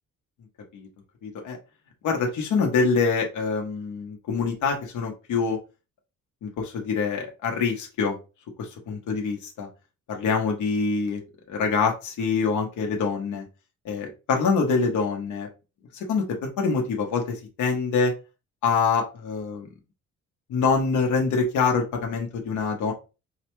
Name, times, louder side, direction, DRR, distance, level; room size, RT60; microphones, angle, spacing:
voice 1, 1.2-1.6 2.0-5.6 6.4-8.1 8.6-9.7 10.1-11.2 11.5-13.4 13.8-15.5 15.9-18.1 18.6-19.7 20.5-22.9, left 5 dB, 75° left, 2 dB, 1.1 m, -25 dB
4.7 x 2.2 x 3.1 m, 0.30 s
cardioid pair, 90°, 30 cm